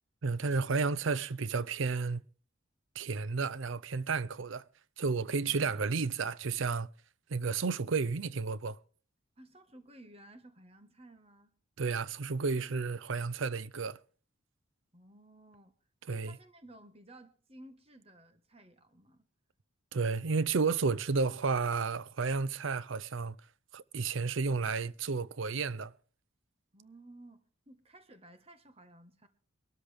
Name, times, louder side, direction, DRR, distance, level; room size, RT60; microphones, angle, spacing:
voice 1, 0.2-2.2 3.0-4.6 5.0-6.9 7.3-8.8 11.8-14.0 16.1-16.4 19.9-23.4 23.7-25.9, right 4 dB, 65° right, 0.6 m, -32 dB
voice 2, 5.5-5.8 9.4-11.5 14.9-15.7 16.0-19.2 26.7-29.3, right 1 dB, 30° right, 1.5 m, -55 dB
22.0 x 13.0 x 3.5 m
head